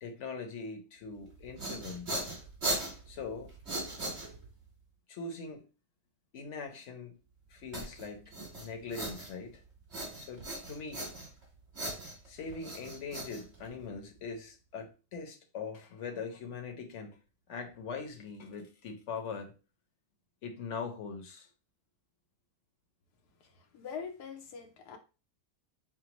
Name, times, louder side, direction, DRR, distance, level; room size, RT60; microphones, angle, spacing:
voice 1, 0.0-2.1 3.1-3.5 5.1-5.6 6.3-7.2 7.5-9.6 10.2-11.0 12.2-17.2 17.5-19.5 20.4-21.5, left 5 dB, 55° left, 1.0 m, -42 dB
sound 1, 1.3-4.7 7.7-9.6 9.9-11.4 11.7-14.0, right 2 dB, 45° right, 1.8 m, -38 dB
voice 2, 23.7-25.0, left 6 dB, 80° left, 1.2 m, -42 dB
5.8 x 2.1 x 2.9 m
omnidirectional pair, 1.6 m